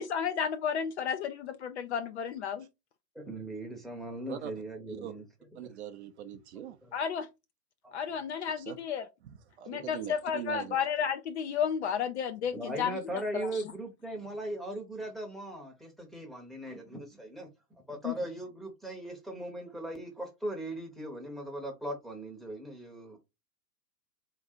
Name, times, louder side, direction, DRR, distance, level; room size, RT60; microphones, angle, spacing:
voice 1, 0.0-2.6 6.9-7.3 7.9-9.0 9.7-13.0 13.3-13.5 18.0-18.1, left 7 dB, 45° left, 0.5 m, -32 dB
voice 2, 3.1-5.2 5.6-5.7 6.8-6.9 7.8-8.2 12.5-23.2, right 1 dB, ahead, 0.8 m, -39 dB
voice 3, 5.5-6.8 8.6-8.8 9.2-10.8, right 10 dB, 45° right, 0.5 m, -42 dB
3.7 x 2.3 x 4.3 m
hypercardioid pair, 120°, 49 cm